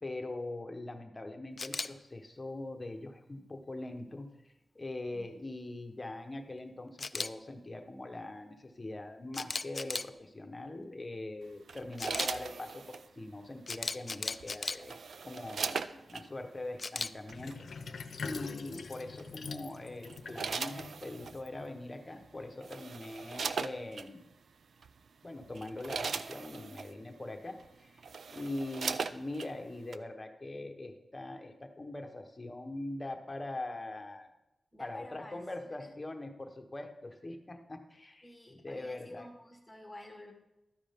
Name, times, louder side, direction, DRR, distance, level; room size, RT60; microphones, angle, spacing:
voice 1, 0.0-17.7 18.2-24.3 25.2-34.3 34.8-39.3, left 2 dB, 20° left, 4 dB, 1.1 m, -42 dB
Camera, 1.6-1.9 7.0-7.3 9.3-10.1 12.0-12.3 13.7-14.8 16.8-17.1, left 4 dB, 35° left, 0.3 m, -35 dB
voice 2, 5.1-5.4 34.7-35.4 35.8-35.9 38.2-40.3, left 1 dB, 5° left, 1 dB, 1.8 m, -50 dB
sound 1, 11.7-13.1 14.4-16.3 17.3-17.5 19.2-19.5 20.0-21.4 22.2-22.3 22.6-24.1 24.8-25.0 25.4-26.9 27.6-27.7 28.0-29.5 29.9-30.0, right 5 dB, 70° right, 0.4 m, -38 dB
Sink (filling or washing), 17.3-22.0, left 5 dB, 75° left, 0.7 m, -44 dB
12.5 x 9.8 x 3.6 m, 0.93 s
wide cardioid pair, 160°, 0 cm